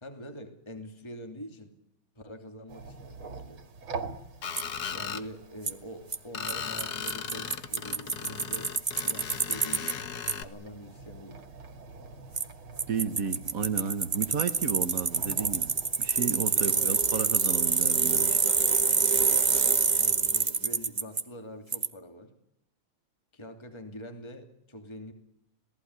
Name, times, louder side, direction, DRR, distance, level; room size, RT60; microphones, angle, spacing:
voice 1, 0.0-1.7 2.1-3.6 4.9-8.7 9.0-10.1 10.4-11.4 16.5-16.9 19.9-22.3 23.3-25.1, equal, 10° left, 5 dB, 2.8 m, -44 dB
sound 1, 2.7-19.6, right 4 dB, 70° right, 2.8 m, -47 dB
Screech, 4.4-5.2 6.3-10.4, left 7 dB, 50° left, 1.7 m, -37 dB
Bicycle, 4.6-4.7 5.7-5.8 6.1-6.2 6.5-6.6 6.8-6.9 7.1-9.9 10.3-10.4 12.4-12.5 12.8-21.2 21.7-21.9, right 4 dB, 30° right, 0.9 m, -26 dB
voice 2, 12.9-15.7 16.0-18.4, right 6 dB, 45° right, 12 dB, 1.3 m, -32 dB
27.0 x 18.5 x 9.7 m, 0.76 s
omnidirectional pair, 2.3 m